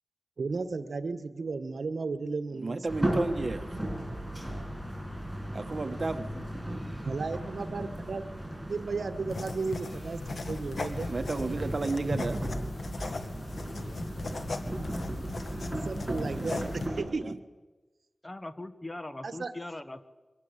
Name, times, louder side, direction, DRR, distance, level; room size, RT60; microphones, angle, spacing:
voice 1, 0.4-2.8 7.0-8.2 8.7-11.1 15.8-17.4 19.2-19.5, right 4 dB, 75° right, 10 dB, 1.4 m, -34 dB
voice 2, 2.5-3.8 5.5-6.3 11.1-12.4 16.2-17.3, right 3 dB, 55° right, 7 dB, 1.6 m, -33 dB
sound 1, 2.9-17.0, right 1 dB, 5° right, 6.5 m, -36 dB
sound 2, 9.3-16.9, left 3 dB, 80° left, 2.0 m, -39 dB
voice 3, 18.2-20.0, left 2 dB, 25° left, 11 dB, 1.5 m, -40 dB
24.0 x 18.5 x 8.3 m, 1.2 s
wide cardioid pair, 70°, 0 cm